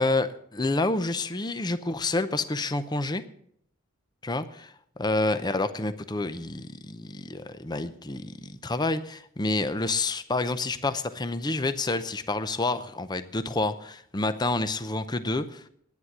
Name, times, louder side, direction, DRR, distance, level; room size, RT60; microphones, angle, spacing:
voice 1, 0.0-3.2 4.2-4.7 5.0-15.6, left 2 dB, 20° left, 11 dB, 0.6 m, -28 dB
10.5 x 9.7 x 7.3 m, 0.68 s
head